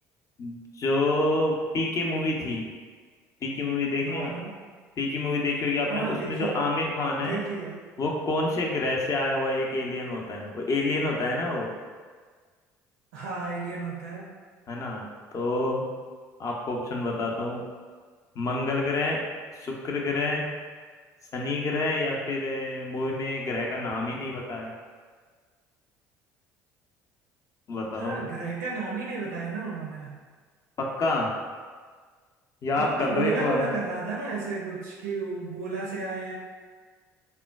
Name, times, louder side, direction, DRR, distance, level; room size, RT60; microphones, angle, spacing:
voice 1, 0.4-2.7 3.4-4.3 5.0-7.4 8.0-11.7 14.7-15.1 15.3-15.8 16.4-17.6 18.4-19.2 19.6-20.4 21.3-24.7 27.7-28.3 30.8-31.3 32.6-33.7, left 2 dB, 40° left, -1 dB, 0.6 m, -28 dB
voice 2, 4.1-4.5 5.9-6.6 7.2-7.8 13.1-14.3 27.9-30.2 32.8-36.4, right 4 dB, 75° right, -2 dB, 0.4 m, -32 dB
3.6 x 2.2 x 2.3 m, 1.5 s
hypercardioid pair, 60°, 9 cm